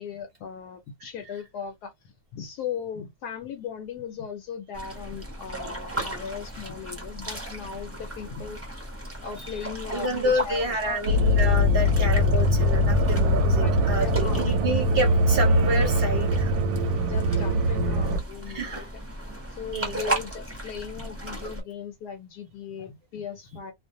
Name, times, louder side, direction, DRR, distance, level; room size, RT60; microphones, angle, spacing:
voice 1, 0.0-8.6 9.2-11.0 13.6-14.5 17.1-18.9 19.5-23.7, left 7 dB, 75° left, 1.1 m, -38 dB
sound 1, 4.7-21.6, right 1 dB, 15° right, 0.6 m, -36 dB
voice 2, 9.9-16.5 18.5-18.9 19.7-20.2, right 1 dB, 45° right, 0.8 m, -29 dB
sound 2, 11.1-18.2, left 1 dB, 75° right, 1.0 m, -22 dB
2.5 x 2.4 x 2.6 m
omnidirectional pair, 1.8 m